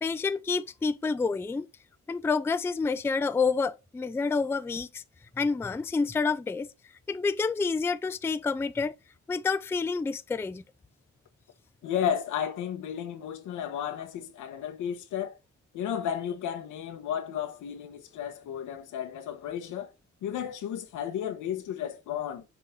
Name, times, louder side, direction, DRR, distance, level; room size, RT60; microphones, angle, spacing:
voice 1, 0.0-1.7 2.1-5.0 5.4-6.7 7.1-9.0 9.3-10.6, left 4 dB, 10° left, 0.3 m, -28 dB
voice 2, 11.8-15.4 15.7-19.9 20.2-22.4, left 9 dB, 85° left, 1.1 m, -33 dB
6.3 x 4.2 x 3.8 m
cardioid pair, 90°, 30 cm